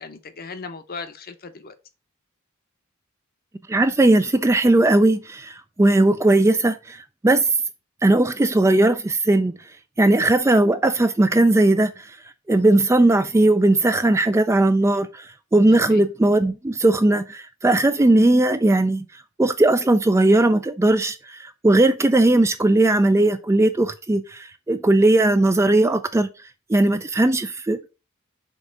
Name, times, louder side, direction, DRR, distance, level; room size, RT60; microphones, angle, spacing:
voice 1, 0.0-1.7 15.7-16.0, left 4 dB, 45° left, 0.7 m, -37 dB
voice 2, 3.7-7.5 8.0-9.5 10.0-12.2 12.5-19.1 19.4-26.3 26.7-27.9, right 2 dB, 15° right, 0.3 m, -18 dB
5.4 x 3.6 x 5.1 m
head